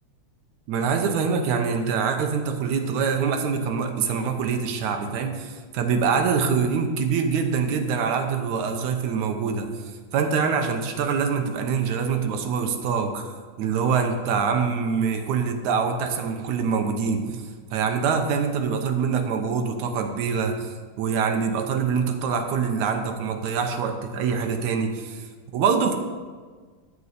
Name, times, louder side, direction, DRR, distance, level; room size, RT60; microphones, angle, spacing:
voice 1, 0.7-25.3 25.5-26.0, right 6 dB, 80° right, 5 dB, 2.4 m, -25 dB
12.5 x 5.5 x 8.1 m, 1.5 s
omnidirectional pair, 3.4 m